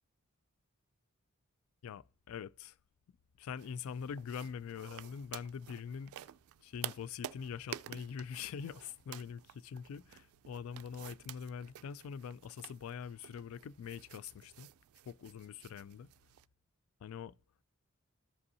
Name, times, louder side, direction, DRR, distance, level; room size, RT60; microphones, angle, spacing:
voice 1, 1.8-2.8 3.4-6.1 6.6-14.7 15.1-16.1 17.0-17.3, left 7 dB, 70° left, 0.3 m, -44 dB
sound 1, 3.6-16.5, right 12 dB, 75° right, 0.3 m, -51 dB
13.5 x 5.3 x 2.7 m
head